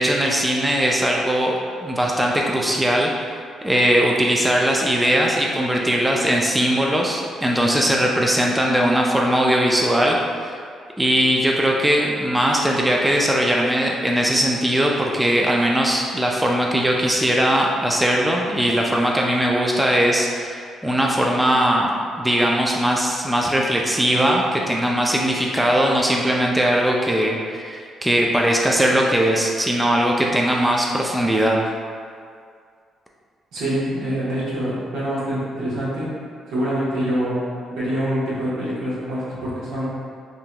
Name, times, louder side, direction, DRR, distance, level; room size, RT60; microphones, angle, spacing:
voice 1, 0.0-1.5 1.8-3.1 3.6-10.5 11.0-31.6, equal, 5° right, -1 dB, 0.3 m, -20 dB
voice 2, 33.5-36.1 36.5-39.9, equal, 85° right, -9 dB, 1.1 m, -25 dB
3.6 x 2.8 x 2.2 m, 2.2 s
cardioid pair, 90°, 0 cm